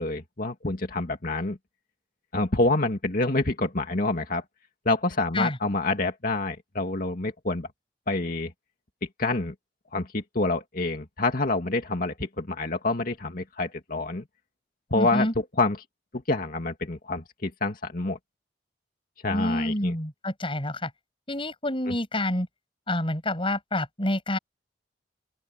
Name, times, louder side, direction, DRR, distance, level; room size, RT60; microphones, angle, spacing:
voice 1, 0.0-1.6 2.3-4.4 4.9-7.7 8.1-8.5 9.2-9.5 9.9-14.2 14.9-15.8 16.1-18.2 19.2-19.9 21.9-22.0, left 2 dB, 55° left, 2.2 m, -27 dB
voice 2, 14.9-15.3 19.3-20.9 21.3-22.5 22.9-24.4, left 1 dB, 30° left, 7.4 m, -27 dB
open air
head